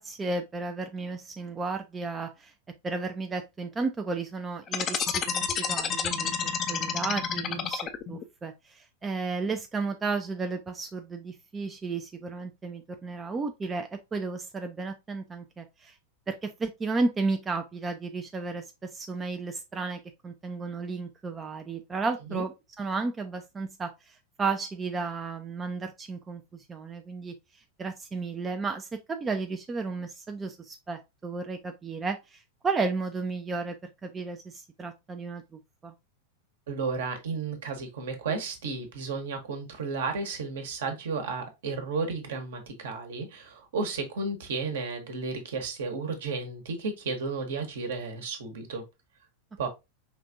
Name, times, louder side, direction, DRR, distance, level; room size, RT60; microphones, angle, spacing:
voice 1, 0.0-2.5 2.8-7.8 8.1-15.9 16.3-27.3 27.8-33.7 34.0-35.9, right 4 dB, 15° right, 0.5 m, -33 dB
sound 1, 4.7-8.2, left 7 dB, 30° left, 0.6 m, -29 dB
voice 2, 36.7-48.8 49.6-49.7, right 4 dB, 60° right, 1.2 m, -33 dB
5.1 x 3.3 x 2.6 m
figure-of-eight pair, 90°, 0 cm